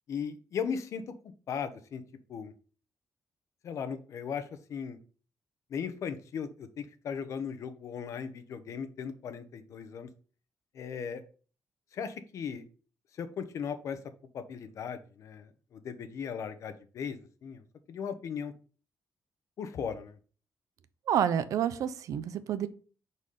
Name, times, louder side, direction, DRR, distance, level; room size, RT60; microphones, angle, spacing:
voice 1, 0.1-1.1 1.5-2.0 2.3-2.5 3.6-5.0 5.7-10.1 10.7-11.2 11.9-12.6 13.2-14.0 14.3-17.6 17.9-18.5 19.6-20.2, left 7 dB, 65° left, 10 dB, 0.8 m, -37 dB
voice 2, 21.1-22.7, right 9 dB, 75° right, 13 dB, 0.5 m, -29 dB
4.9 x 4.1 x 5.5 m, 0.39 s
cardioid pair, 115°, 6 cm